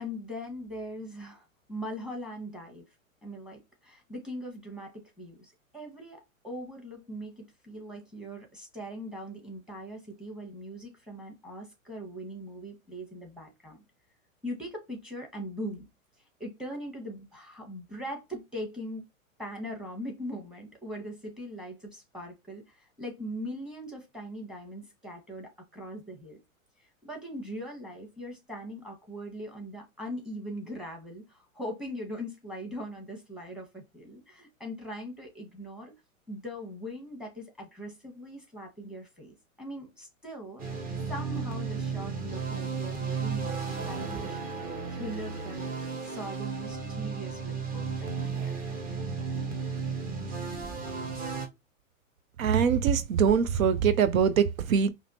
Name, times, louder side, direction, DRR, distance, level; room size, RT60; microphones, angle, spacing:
voice 1, 0.0-2.8 3.2-13.8 14.4-15.8 16.4-19.0 19.4-26.4 27.0-35.9 36.3-40.6 41.1-44.4 44.9-45.7 46.0-48.5, equal, ahead, 1.3 m, -40 dB
sound 1, 40.6-51.5, right 5 dB, 20° right, 0.9 m, -34 dB
voice 2, 52.4-54.9, right 7 dB, 75° right, 0.6 m, -23 dB
4.9 x 2.1 x 2.7 m
hypercardioid pair, 110°, 42 cm